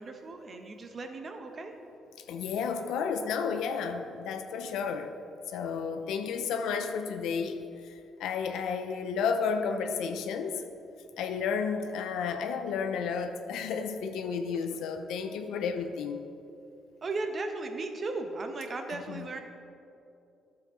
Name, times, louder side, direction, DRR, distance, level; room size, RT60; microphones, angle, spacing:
voice 1, 0.0-1.7 17.0-19.4, right 3 dB, 40° right, 5 dB, 0.9 m, -36 dB
voice 2, 2.2-5.1 5.5-10.6 11.2-16.2 18.9-19.3, left 6 dB, 85° left, 7 dB, 0.5 m, -32 dB
10.5 x 6.6 x 3.8 m, 2.7 s
cardioid pair, 90°, 0 cm